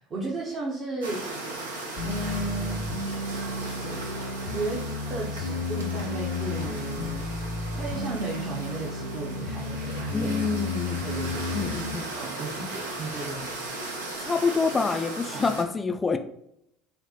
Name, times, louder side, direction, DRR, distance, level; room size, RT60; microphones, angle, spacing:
voice 1, 0.1-1.2 2.0-2.8 3.8-4.1 4.4-4.8 5.1-7.3 7.8-10.3 11.0-11.7 12.2-13.5 15.3-15.5, right 2 dB, 40° right, -3 dB, 0.7 m, -34 dB
sound 1, 1.0-15.6, right 2 dB, 90° right, 0.6 m, -37 dB
sound 2, 2.0-12.0, left 3 dB, 90° left, 1.3 m, -33 dB
voice 2, 10.1-11.0 11.5-12.1 14.2-16.2, left 4 dB, 25° left, 8 dB, 0.3 m, -27 dB
4.3 x 2.1 x 2.8 m, 0.77 s
hypercardioid pair, 70°, 0 cm